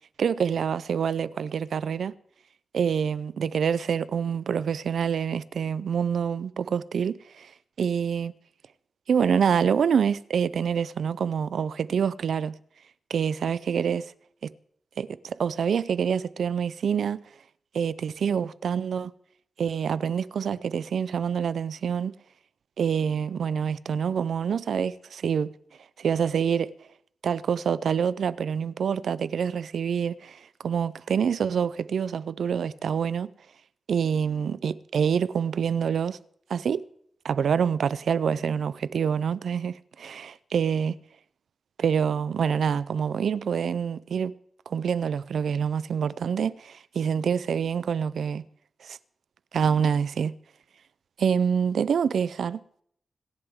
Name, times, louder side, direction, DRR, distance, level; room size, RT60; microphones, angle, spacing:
voice 1, 0.2-2.1 2.7-7.5 7.8-8.3 9.1-12.5 13.1-14.1 14.4-14.5 15.0-17.2 17.7-19.1 19.6-22.1 22.8-25.5 26.0-26.7 27.2-33.3 33.9-36.2 36.5-36.8 37.2-40.9 41.8-44.3 44.7-48.4 48.8-49.0 49.5-50.3 51.2-52.8, right 7 dB, 80° right, 0.5 m, -26 dB
25.5 x 11.0 x 3.6 m
wide cardioid pair, 175°, 0 cm